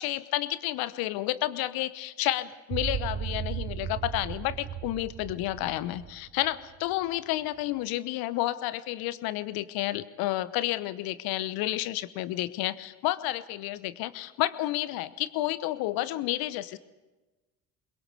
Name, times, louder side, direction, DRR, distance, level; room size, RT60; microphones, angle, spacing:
voice 1, 0.0-16.8, left 16 dB, 65° left, 15 dB, 1.1 m, -31 dB
sound 1, 2.7-7.0, right 9 dB, 35° right, 1.1 m, -36 dB
22.5 x 21.5 x 6.8 m, 1.2 s
hypercardioid pair, 60°, 39 cm